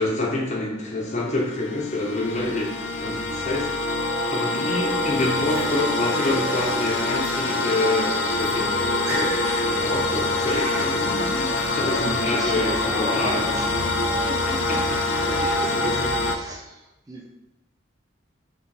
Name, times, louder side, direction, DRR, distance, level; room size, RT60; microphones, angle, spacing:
voice 1, 0.0-4.0 4.3-8.8 9.1-13.5 14.1-14.2 14.7-14.8 15.4-16.1, left 2 dB, 35° left, -1 dB, 0.7 m, -27 dB
sound 1, 1.1-16.4, left 2 dB, 70° left, 0.5 m, -25 dB
Laughter, 4.3-5.8 6.1-6.8 7.2-7.3 8.0-8.1 8.3-8.6 8.9-9.7 10.0-11.0 11.6-11.8 12.2-12.6 13.1-13.6, right 1 dB, 85° right, 1.0 m, -36 dB
sound 2, 6.1-13.8, equal, 65° right, 1.4 m, -43 dB
voice 2, 10.5-11.3 12.3-14.8 15.2-15.8 16.2-17.3, right 1 dB, 15° right, 0 dB, 0.3 m, -38 dB
5.1 x 3.0 x 3.3 m, 0.94 s
head